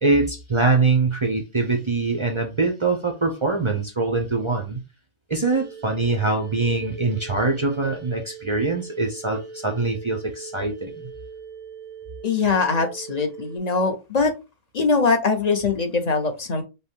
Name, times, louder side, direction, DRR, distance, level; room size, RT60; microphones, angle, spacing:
voice 1, 0.0-4.8 5.3-11.0, right 3 dB, 40° right, 0.4 m, -23 dB
sound 1, 5.5-13.6, right 5 dB, 90° right, 1.2 m, -41 dB
voice 2, 12.2-14.3 14.7-16.6, left 4 dB, 40° left, 0.6 m, -22 dB
5.2 x 2.2 x 3.5 m
omnidirectional pair, 1.5 m